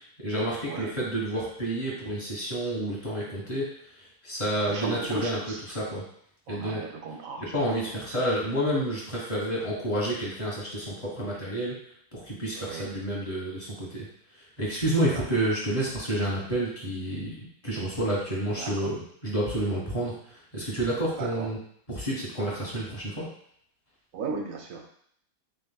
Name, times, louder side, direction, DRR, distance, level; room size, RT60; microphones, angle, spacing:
voice 1, 0.2-3.7 4.2-6.0 6.5-6.8 7.4-11.8 12.1-14.1 14.6-20.1 20.5-21.6 21.9-23.3, right 1 dB, 25° left, -5 dB, 1.5 m, -29 dB
voice 2, 4.7-5.6 6.5-7.4 12.6-12.8 15.1-15.2 18.6-18.7 21.2-21.5 24.1-24.9, right 4 dB, 65° right, 2 dB, 1.0 m, -35 dB
7.4 x 2.5 x 2.3 m, 0.66 s
omnidirectional pair, 1.7 m